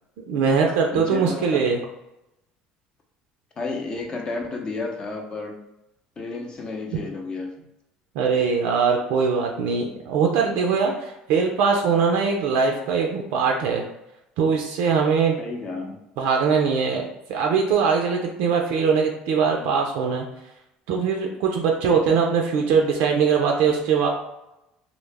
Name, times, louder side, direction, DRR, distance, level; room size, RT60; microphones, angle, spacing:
voice 1, 0.3-1.8 8.2-13.8 14.4-15.4 16.2-17.0 17.3-20.3 20.9-24.1, right 5 dB, 75° right, 1 dB, 0.3 m, -21 dB
voice 2, 0.9-1.7 3.6-5.6 6.2-7.5 15.4-16.0, left 3 dB, 35° left, 2 dB, 0.6 m, -31 dB
2.1 x 2.0 x 3.2 m, 0.88 s
supercardioid pair, 90°, 3 cm